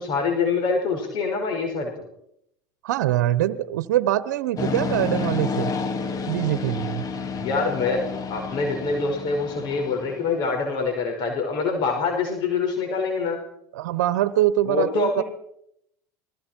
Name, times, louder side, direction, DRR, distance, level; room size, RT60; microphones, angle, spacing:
voice 1, 0.0-1.9 7.3-13.4 14.7-15.2, left 4 dB, 55° left, 3 dB, 5.4 m, -25 dB
voice 2, 2.8-5.7 6.3-7.0 13.7-15.2, right 13 dB, 80° right, 15 dB, 1.0 m, -23 dB
sound 1, 4.6-10.4, left 4 dB, 40° left, 2.8 m, -30 dB
28.0 x 20.5 x 4.6 m, 0.75 s
hypercardioid pair, 85°, 9 cm